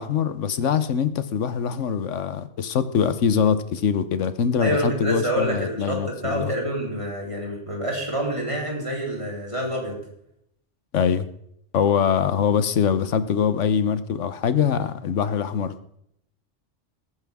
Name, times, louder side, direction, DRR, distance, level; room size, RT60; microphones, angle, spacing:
voice 1, 0.0-6.5 10.9-11.3 11.7-15.7, left 7 dB, 75° left, 13 dB, 1.2 m, -23 dB
voice 2, 4.6-10.0, equal, 25° right, -2 dB, 3.9 m, -27 dB
21.0 x 9.5 x 3.6 m, 0.73 s
omnidirectional pair, 1.3 m